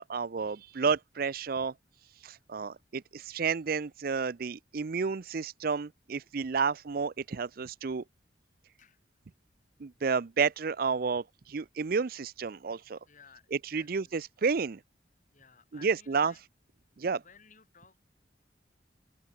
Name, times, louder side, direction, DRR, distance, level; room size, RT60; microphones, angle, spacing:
voice 1, 0.0-1.7 2.1-8.0 9.8-13.0 13.5-14.8 15.8-16.3 17.0-17.2, right 5 dB, 50° right, 0.5 m, -31 dB
voice 2, 13.1-14.2 15.3-16.4 16.9-18.0, left 6 dB, 45° left, 3.5 m, -58 dB
open air
head